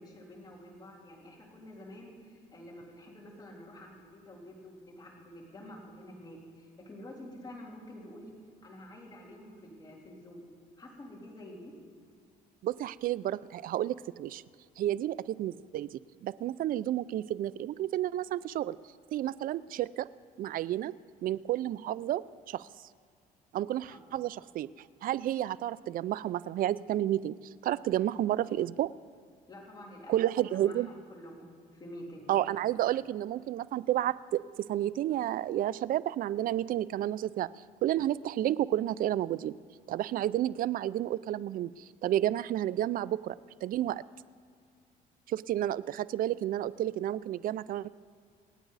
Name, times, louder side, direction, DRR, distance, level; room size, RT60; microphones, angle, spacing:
voice 1, 0.0-8.3 8.6-10.5 10.8-11.7 23.9-24.0 29.5-32.3, left 1 dB, 25° left, -2 dB, 3.6 m, -48 dB
voice 2, 12.6-14.4 14.8-18.8 19.1-20.1 20.4-20.9 21.2-22.7 23.5-24.7 25.0-27.3 27.6-28.9 30.1-30.9 32.3-34.4 34.7-37.5 37.8-39.5 39.9-43.4 43.6-44.0 45.3-47.9, right 13 dB, 55° right, 19 dB, 0.4 m, -31 dB
27.5 x 9.2 x 4.1 m, 2.2 s
cardioid pair, 110°, 17 cm